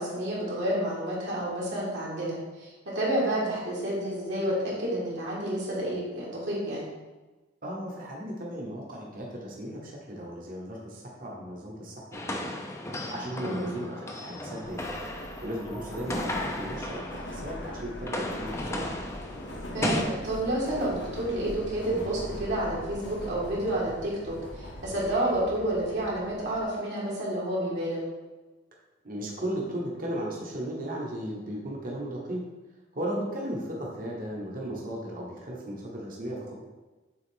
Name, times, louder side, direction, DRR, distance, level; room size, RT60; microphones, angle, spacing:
voice 1, 0.0-6.8 13.4-13.7 19.7-28.0, right 1 dB, 75° right, -6 dB, 1.7 m, -30 dB
voice 2, 7.6-12.5 13.1-14.9 15.2-18.9 29.0-32.4 32.9-36.6, right 1 dB, 50° right, -2 dB, 1.1 m, -36 dB
sound 1, 12.1-17.6 17.9-20.0, left 1 dB, 15° left, 0.5 m, -35 dB
Subway metro underground, 14.6-26.6, left 1 dB, 80° left, 0.9 m, -41 dB
7.1 x 3.7 x 3.6 m, 1.2 s
head